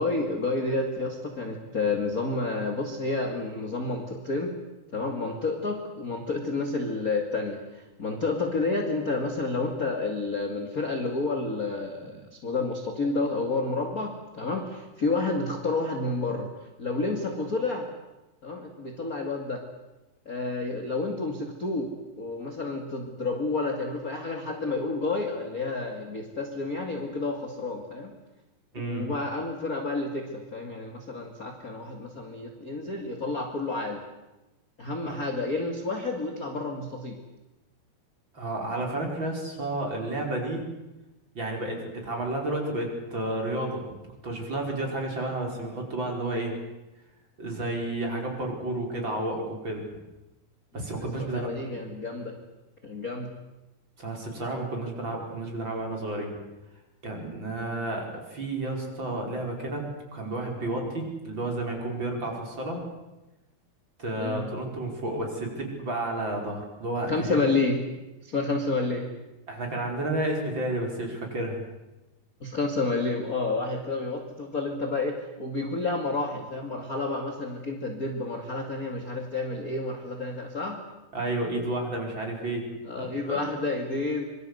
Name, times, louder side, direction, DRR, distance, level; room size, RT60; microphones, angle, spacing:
voice 1, 0.0-4.6 4.9-7.6 8.0-12.2 12.4-16.5 16.8-17.9 18.4-19.6 20.3-21.9 22.2-28.1 28.8-34.0 34.8-37.2 51.2-52.3 52.8-53.3 57.7-57.8 64.2-64.5 67.1-67.9 68.2-69.1 72.4-80.8 82.8-84.2, left 3 dB, 30° left, 3 dB, 2.1 m, -30 dB
voice 2, 28.7-29.1 35.1-35.2 38.3-40.7 41.4-43.8 44.2-46.5 47.4-49.8 50.7-51.5 54.0-56.3 57.0-59.9 60.1-62.8 64.0-67.5 69.5-71.6 81.1-82.6 83.0-83.4, right 2 dB, 30° right, 1 dB, 5.5 m, -31 dB
26.0 x 23.5 x 8.1 m, 1.0 s
omnidirectional pair, 4.6 m